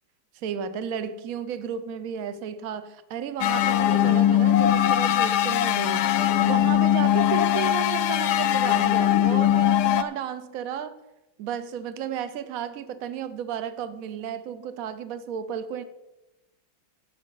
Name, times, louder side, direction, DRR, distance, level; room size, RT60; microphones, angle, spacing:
voice 1, 0.3-6.1 6.4-11.0 11.4-15.8, right 8 dB, 60° right, 12 dB, 1.0 m, -33 dB
sound 1, 3.4-10.0, left 11 dB, 75° left, 1.0 m, -21 dB
15.5 x 8.3 x 3.9 m, 0.97 s
omnidirectional pair, 2.2 m